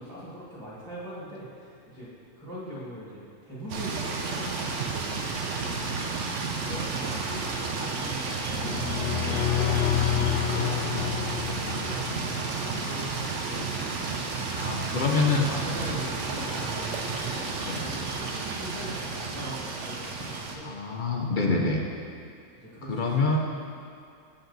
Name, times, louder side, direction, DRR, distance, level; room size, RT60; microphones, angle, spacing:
voice 1, 0.0-2.1 2.4-5.3 5.5-5.9 6.5-8.8 9.2-9.7 10.1-14.4 15.2-21.2 22.5-23.4, equal, 5° left, -10 dB, 1.6 m, -41 dB
sound 1, 3.7-20.6, right 4 dB, 75° right, 1.1 m, -32 dB
sound 2, 8.4-12.3, left 11 dB, 70° left, 0.9 m, -28 dB
voice 2, 14.5-15.5 17.6-17.9 20.6-21.8 22.9-23.4, left 3 dB, 45° left, 0 dB, 0.8 m, -26 dB
7.7 x 7.0 x 4.0 m, 2.4 s
omnidirectional pair, 1.3 m